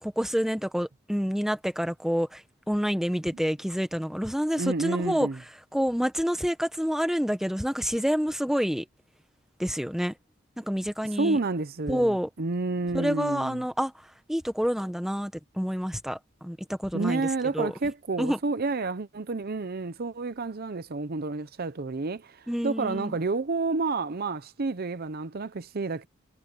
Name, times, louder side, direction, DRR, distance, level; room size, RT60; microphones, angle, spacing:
voice 1, 0.0-2.4 2.7-5.3 5.7-8.8 9.6-10.1 10.6-11.4 11.9-12.3 12.9-13.9 14.3-17.3 17.5-17.7 18.2-18.4 22.5-23.2, equal, ahead, 1.3 m, -28 dB
voice 2, 4.6-5.4 11.2-13.6 16.9-26.1, right 3 dB, 50° right, 0.7 m, -30 dB
head